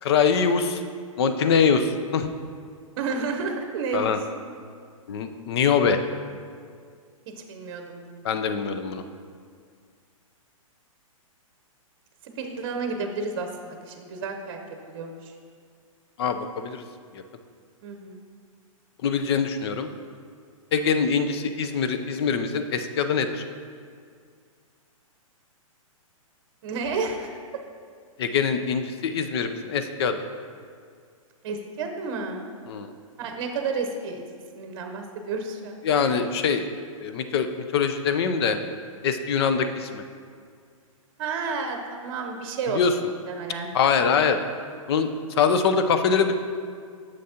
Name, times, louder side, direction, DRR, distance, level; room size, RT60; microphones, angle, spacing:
voice 1, 0.0-0.8 1.2-2.3 3.9-4.2 5.1-6.0 8.2-9.0 16.2-16.8 17.1-17.2 19.0-19.9 20.7-23.4 28.2-30.2 32.7-32.9 35.8-36.7 37.0-38.6 39.0-40.0 42.7-42.9 43.7-44.4 44.9-45.1 45.4-46.3, left 6 dB, 45° left, 9 dB, 0.6 m, -23 dB
voice 2, 3.0-4.1 7.5-8.4 12.4-14.6 14.9-15.3 17.8-18.2 26.6-27.3 31.4-32.5 33.2-34.3 34.6-35.8 41.2-42.8 43.3-43.7, right 4 dB, 45° right, 4 dB, 0.8 m, -31 dB
9.2 x 6.5 x 2.8 m, 2.1 s
hypercardioid pair, 150°, 18 cm